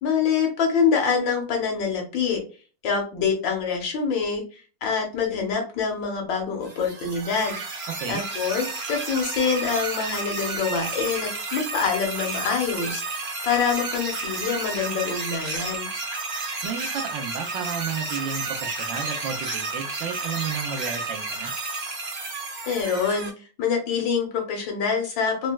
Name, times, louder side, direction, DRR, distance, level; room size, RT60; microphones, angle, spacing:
voice 1, 0.0-2.4 2.8-7.5 8.1-15.9 22.7-25.5, left 6 dB, 80° left, 2 dB, 1.7 m, -25 dB
sound 1, 6.6-23.3, right 3 dB, 45° right, 0.9 m, -31 dB
voice 2, 16.6-21.5, right 6 dB, 80° right, 5 dB, 1.4 m, -32 dB
4.1 x 2.2 x 2.2 m, 0.37 s
omnidirectional pair, 2.0 m